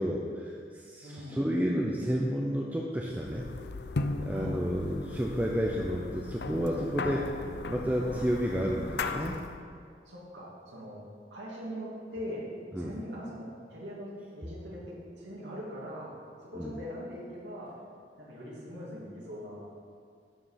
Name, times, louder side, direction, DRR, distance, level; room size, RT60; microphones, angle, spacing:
voice 1, 0.0-3.5 4.2-7.3 7.7-9.4 12.7-12.9 16.6-16.7, equal, 10° right, -2 dB, 0.6 m, -31 dB
voice 2, 1.0-1.4 4.3-4.6 7.2-7.3 8.0-8.7 10.1-12.5 12.8-16.1 16.4-17.8 18.2-19.7, equal, 80° right, -5 dB, 2.5 m, -42 dB
sound 1, 3.1-9.6, left 3 dB, 65° left, 0.5 m, -37 dB
11.5 x 5.1 x 5.8 m, 2.2 s
head